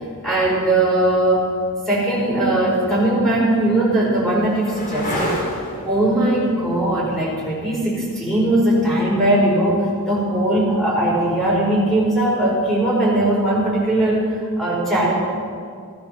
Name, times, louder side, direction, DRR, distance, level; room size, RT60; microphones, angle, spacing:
voice 1, 0.2-1.5 1.9-5.4 5.8-14.3 14.6-15.1, right 1 dB, ahead, -5 dB, 4.8 m, -19 dB
sound 1, 1.9-2.0 2.8-10.4 12.7-13.3, left 1 dB, 40° left, 3.2 m, -33 dB
16.5 x 13.0 x 6.4 m, 2.2 s
head